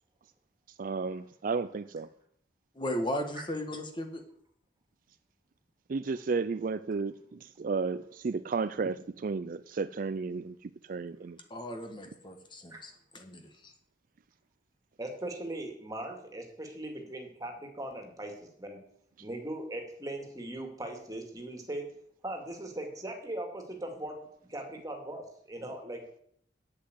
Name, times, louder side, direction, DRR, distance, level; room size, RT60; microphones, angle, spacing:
voice 1, 0.8-2.1 5.9-11.4, right 4 dB, 50° right, 0.4 m, -33 dB
voice 2, 2.7-4.2 11.5-13.7, left 1 dB, 25° left, 1.5 m, -36 dB
voice 3, 15.0-18.8 19.2-21.8 22.2-24.2 24.5-26.0, right 1 dB, 20° right, 2.4 m, -39 dB
8.5 x 7.9 x 8.1 m
head